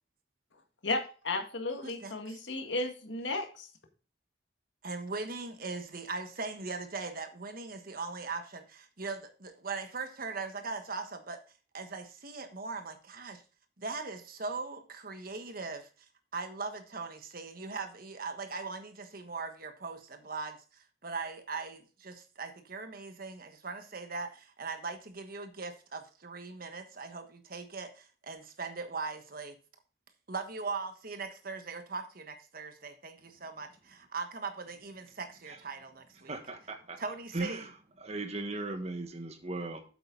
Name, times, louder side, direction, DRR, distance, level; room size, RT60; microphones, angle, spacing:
voice 1, 0.8-3.7, left 2 dB, 80° left, 1.9 m, -34 dB
voice 2, 1.8-2.4 4.8-11.4 11.7-13.4 13.8-15.9 16.3-29.6 30.3-36.3 37.0-37.6, right 4 dB, 50° right, 1.4 m, -40 dB
voice 3, 36.2-37.0 37.3-37.7 38.0-39.8, right 2 dB, 35° right, 1.4 m, -37 dB
8.6 x 7.8 x 3.9 m
head